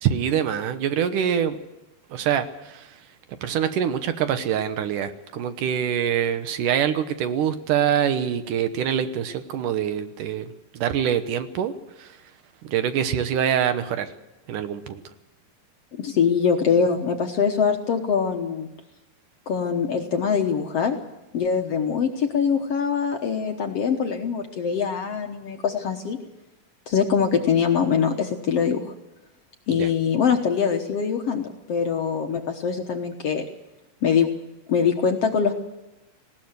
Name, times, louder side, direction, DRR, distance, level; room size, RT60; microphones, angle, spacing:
voice 1, 0.0-1.6 2.1-2.9 3.4-11.7 12.0-12.1 12.6-14.1 14.5-15.0 29.8-29.9, right 9 dB, 70° right, 10 dB, 2.5 m, -25 dB
voice 2, 16.0-18.7 19.5-21.0 21.3-26.2 26.9-28.9 29.7-33.5 34.0-34.3 34.7-35.5, left 6 dB, 60° left, 4 dB, 1.8 m, -23 dB
19.5 x 17.5 x 8.1 m, 0.96 s
omnidirectional pair, 4.0 m